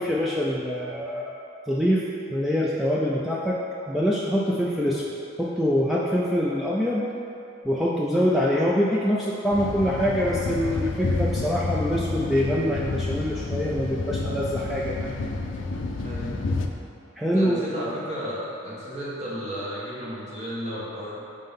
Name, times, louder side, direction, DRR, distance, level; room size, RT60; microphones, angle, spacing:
voice 1, 0.0-1.3 1.7-2.0 2.3-3.6 3.9-5.0 5.4-7.1 7.6-15.1 17.2-17.6, equal, ahead, -6 dB, 0.3 m, -24 dB
sound 1, 9.5-16.7, left 3 dB, 75° left, 0.4 m, -29 dB
voice 2, 16.0-16.4 17.3-21.2, equal, 35° right, -8 dB, 1.4 m, -33 dB
5.3 x 3.8 x 5.3 m, 2.7 s
head